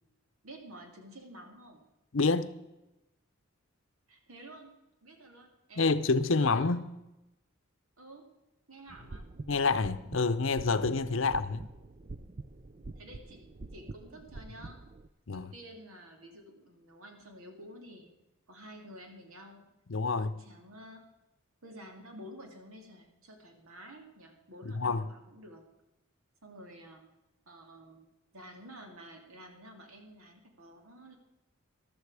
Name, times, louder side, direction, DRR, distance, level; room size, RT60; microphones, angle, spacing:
voice 1, 0.4-1.9 4.1-4.7 5.0-5.8 6.4-6.7 8.0-8.3 8.7-9.3 11.1-11.4 13.0-14.8 15.3-18.1 18.5-19.7 20.1-21.0 21.6-25.6 26.4-27.0 27.5-28.0 28.3-31.2, equal, 85° right, 2.6 m, -51 dB
voice 2, 2.1-2.5 5.8-6.9 9.5-11.6 15.3-15.5 19.9-20.3 24.7-25.1, left 4 dB, 65° left, 0.7 m, -28 dB
sound 1, 8.9-15.1, right 3 dB, 35° right, 0.5 m, -46 dB
14.0 x 12.5 x 4.9 m
head